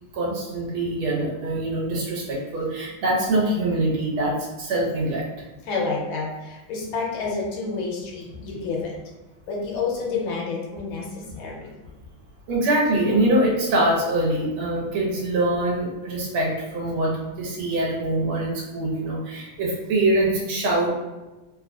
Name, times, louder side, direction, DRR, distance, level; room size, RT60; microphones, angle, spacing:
voice 1, 0.1-5.3 11.4-11.5 12.5-20.9, right 1 dB, 80° right, -4 dB, 1.6 m, -24 dB
voice 2, 5.6-8.9 9.5-11.7, left 4 dB, 75° left, -2 dB, 1.4 m, -29 dB
3.7 x 2.5 x 2.3 m, 1.1 s
omnidirectional pair, 2.3 m